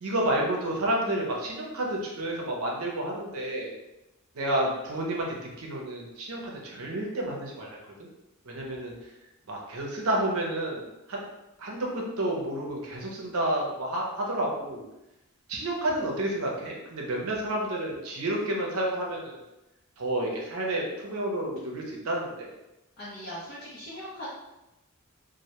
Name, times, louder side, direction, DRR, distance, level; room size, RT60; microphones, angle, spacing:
voice 1, 0.0-3.7 4.3-7.7 8.4-8.9 9.5-10.8 11.1-11.2 11.6-14.8 15.5-19.4 20.0-22.5, right 1 dB, 70° right, -1 dB, 0.6 m, -30 dB
voice 2, 23.0-24.3, equal, 45° left, -9 dB, 0.6 m, -40 dB
2.1 x 2.1 x 2.8 m, 0.95 s
head